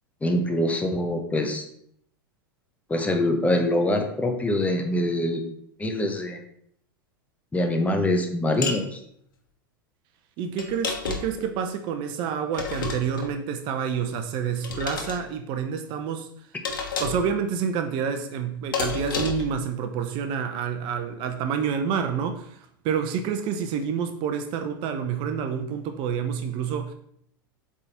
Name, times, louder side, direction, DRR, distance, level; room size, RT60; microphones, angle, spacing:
voice 1, 0.2-1.6 2.9-5.4 5.8-6.4 7.5-9.0, left 1 dB, 10° left, 1.1 m, -24 dB
sound 1, 8.6-8.8 10.6-11.4 12.5-13.3 14.6-15.2 16.6-17.3 18.7-19.5, left 4 dB, 65° left, 1.5 m, -30 dB
voice 2, 10.4-16.5 17.0-26.9, right 7 dB, 45° right, 0.8 m, -28 dB
7.8 x 3.7 x 4.3 m
hypercardioid pair, 90°, 12 cm